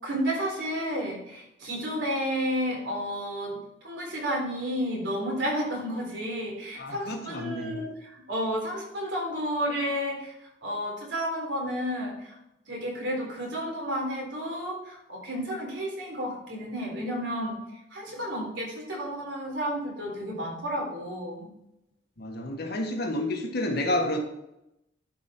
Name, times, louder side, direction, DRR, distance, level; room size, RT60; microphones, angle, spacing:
voice 1, 0.0-3.6 3.8-12.4 12.7-21.5, equal, 75° right, -2 dB, 3.8 m, -31 dB
voice 2, 6.8-7.8 22.2-24.2, left 1 dB, 60° left, 3 dB, 1.5 m, -30 dB
12.0 x 5.3 x 4.4 m, 0.86 s
head